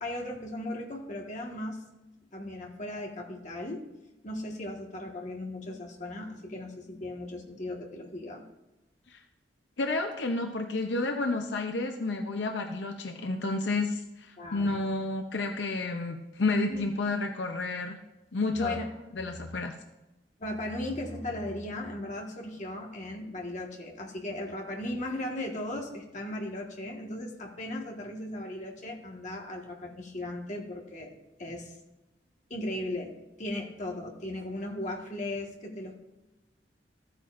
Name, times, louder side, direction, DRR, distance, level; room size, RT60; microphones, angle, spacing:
voice 1, 0.0-1.8 2.3-3.8 4.2-8.4 14.4-14.8 16.7-16.8 18.5-18.9 20.4-31.1 31.4-31.7 32.5-33.1 33.4-35.9, left 1 dB, 45° left, 0 dB, 1.6 m, -37 dB
voice 2, 9.8-18.0 18.3-18.8 19.2-19.7, left 2 dB, 85° left, 5 dB, 0.7 m, -30 dB
14.0 x 8.9 x 2.6 m, 0.99 s
head